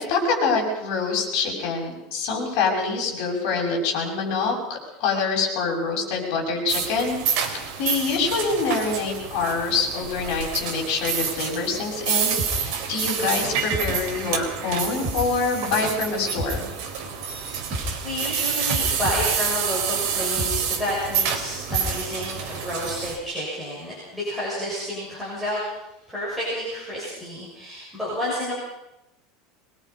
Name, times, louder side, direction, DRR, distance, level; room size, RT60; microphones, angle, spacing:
voice 1, 0.0-16.7, left 4 dB, 50° left, 0 dB, 6.5 m, -25 dB
sound 1, 6.7-23.2, right 7 dB, 55° right, 3.8 m, -28 dB
sound 2, 12.4-22.6 22.9-23.0, equal, 15° right, 7.0 m, -34 dB
voice 2, 17.3-25.7 26.1-28.5, equal, ahead, -8 dB, 6.7 m, -30 dB
23.0 x 21.5 x 5.4 m, 0.92 s
supercardioid pair, 175°, 0 cm